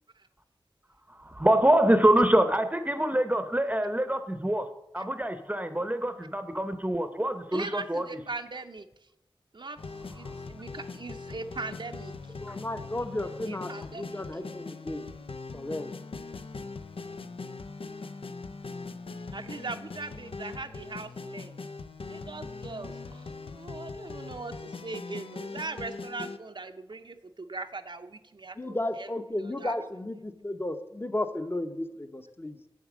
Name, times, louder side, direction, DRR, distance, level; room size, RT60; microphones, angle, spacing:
voice 1, 1.1-4.7 4.9-8.1, right 1 dB, 15° right, 9 dB, 0.7 m, -25 dB
voice 2, 7.5-8.9 9.5-9.8 10.1-12.1 13.5-14.2 19.3-21.6 22.1-23.3 23.5-29.1 29.4-29.7, right 3 dB, 60° right, 7 dB, 0.6 m, -40 dB
sound 1, 9.8-26.4, left 4 dB, 85° left, 0.5 m, -41 dB
voice 3, 12.4-15.1 15.5-15.9 28.6-32.6, left 1 dB, 25° left, 9 dB, 0.8 m, -34 dB
8.1 x 7.2 x 6.1 m, 0.89 s
wide cardioid pair, 55°, 9 cm